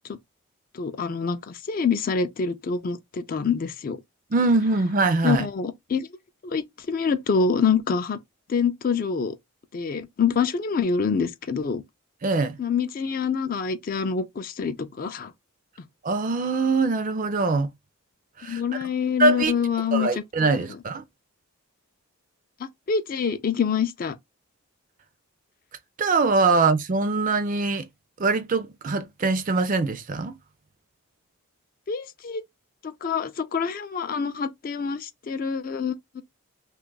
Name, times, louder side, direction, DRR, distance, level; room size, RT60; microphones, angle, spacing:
voice 1, 0.7-4.0 5.2-6.1 6.4-8.2 8.5-9.3 9.7-11.8 12.6-15.3 18.5-20.1 20.6-20.7 22.9-24.2 31.9-32.4 32.8-36.2, left 6 dB, 40° left, 0.3 m, -26 dB
voice 2, 4.3-5.5 12.2-12.6 16.0-17.7 18.4-18.8 19.2-19.5 19.9-21.0 26.0-27.9 28.2-30.3, right 3 dB, 35° right, 0.4 m, -23 dB
2.9 x 2.3 x 3.8 m
head